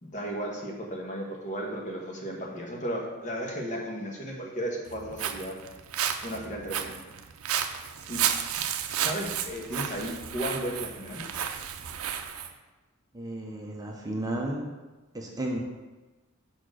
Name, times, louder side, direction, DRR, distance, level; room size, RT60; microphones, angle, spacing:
voice 1, 0.0-5.5 6.2-7.0 8.1-8.2 8.6-8.7 9.0-11.2, equal, 35° left, -1 dB, 1.2 m, -34 dB
Walk footsteps, 4.9-12.5, right 9 dB, 75° right, 0.5 m, -32 dB
voice 2, 13.1-14.7 15.1-15.6, right 1 dB, 15° right, -1 dB, 0.8 m, -33 dB
5.7 x 4.4 x 6.3 m, 1.2 s
head